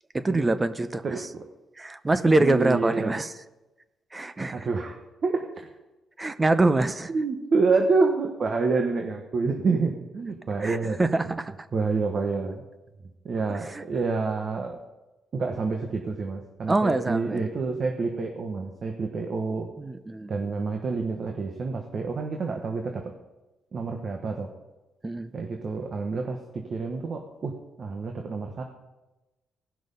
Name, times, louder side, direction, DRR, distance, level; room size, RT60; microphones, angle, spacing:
voice 1, 0.1-1.3 1.8-3.3 4.1-4.7 6.2-7.1 10.6-11.5 13.5-13.8 16.7-17.4 19.8-20.3 25.0-25.3, right 2 dB, 20° right, 12 dB, 0.7 m, -25 dB
voice 2, 1.0-1.4 2.4-3.1 4.5-5.7 7.1-11.0 11.2-11.4 11.7-12.6 13.2-14.8 15.3-19.7 20.3-23.1 23.7-24.5 25.3-28.6, right 4 dB, 45° right, 3 dB, 1.2 m, -28 dB
17.5 x 6.1 x 5.3 m, 1.1 s
cardioid pair, 90°, 0 cm